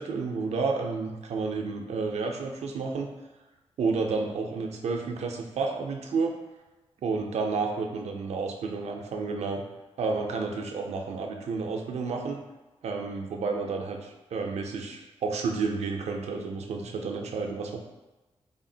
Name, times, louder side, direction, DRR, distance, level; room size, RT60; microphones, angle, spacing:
voice 1, 0.0-3.1 3.8-6.3 7.0-9.6 10.0-12.4 12.8-17.8, right 4 dB, 75° right, 2 dB, 0.4 m, -31 dB
3.5 x 2.0 x 2.6 m, 1.1 s
cardioid pair, 65°, 11 cm